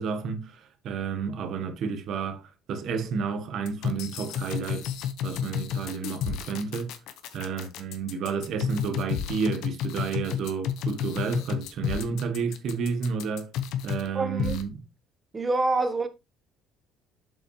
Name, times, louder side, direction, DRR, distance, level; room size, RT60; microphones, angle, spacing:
voice 1, 0.0-4.9 5.2-6.9 7.3-13.5 13.8-14.8, right 5 dB, 60° right, 1.3 m, -31 dB
sound 1, 3.7-14.1 14.4-14.6, left 9 dB, 75° left, 0.9 m, -31 dB
voice 2, 14.1-14.6 15.3-16.1, right 3 dB, 25° right, 0.9 m, -26 dB
7.4 x 5.4 x 3.1 m
supercardioid pair, 95°, 0 cm